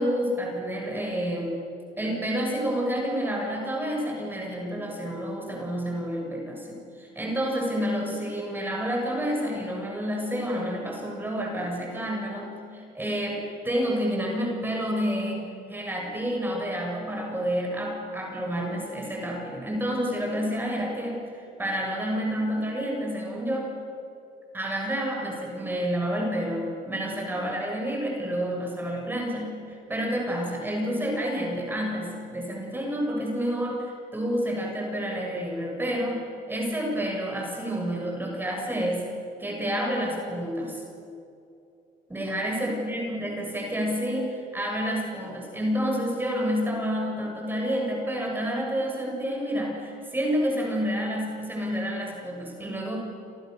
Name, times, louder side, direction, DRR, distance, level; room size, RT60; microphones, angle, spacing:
voice 1, 0.0-1.6 2.0-23.8 24.5-29.5 29.9-36.2 36.5-39.0 39.4-40.8 42.1-53.0, equal, 10° right, -1 dB, 7.6 m, -29 dB
28.5 x 28.0 x 6.9 m, 2.7 s
cardioid pair, 110°, 17 cm